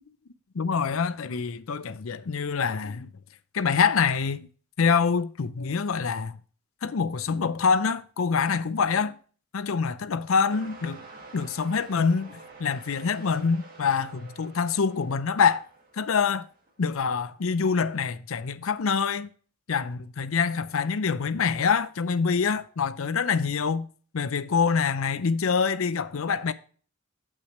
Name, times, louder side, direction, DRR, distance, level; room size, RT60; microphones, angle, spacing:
voice 1, 0.5-3.1 3.5-4.5 4.8-6.4 6.8-9.1 9.5-11.0 11.3-15.6 16.0-16.5 16.8-19.3 19.7-23.9 24.1-26.5, left 5 dB, 70° left, 0.5 m, -25 dB
sound 1, 10.5-16.9 17.6-17.7, right 3 dB, 40° right, 1.9 m, -49 dB
8.8 x 8.1 x 3.1 m
head